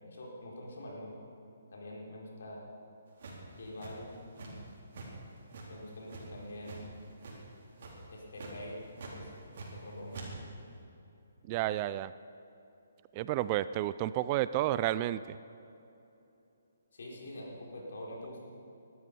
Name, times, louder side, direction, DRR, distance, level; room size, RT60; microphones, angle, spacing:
voice 1, 0.0-1.2 1.7-2.6 3.5-4.6 5.7-6.8 8.1-9.3 9.7-10.3 16.9-18.4, left 1 dB, 65° left, -3 dB, 4.8 m, -45 dB
sound 1, 3.2-4.7 4.9-5.1 5.5-6.8 7.2-7.5 7.8-8.0 8.3-8.5 9.0-9.8 10.1-10.3, right 3 dB, 55° right, 4.3 m, -45 dB
voice 2, 11.5-12.1 13.2-15.4, right 14 dB, 30° right, 15 dB, 0.4 m, -31 dB
20.0 x 12.5 x 5.5 m, 2.8 s
figure-of-eight pair, 140°, 0 cm